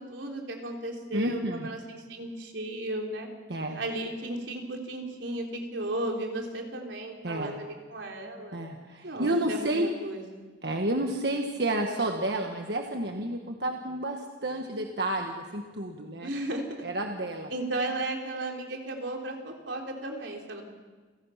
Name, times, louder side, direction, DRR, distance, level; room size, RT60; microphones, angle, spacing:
voice 1, 0.0-3.3 3.7-8.6 9.0-10.5 16.2-16.6 17.5-20.6, right 1 dB, 90° right, 1 dB, 3.7 m, -35 dB
voice 2, 1.1-1.7 3.5-3.8 7.2-7.6 8.5-9.9 10.6-16.3 16.8-17.5, right 1 dB, 65° right, 3 dB, 1.5 m, -30 dB
29.5 x 17.5 x 5.8 m, 1.4 s
head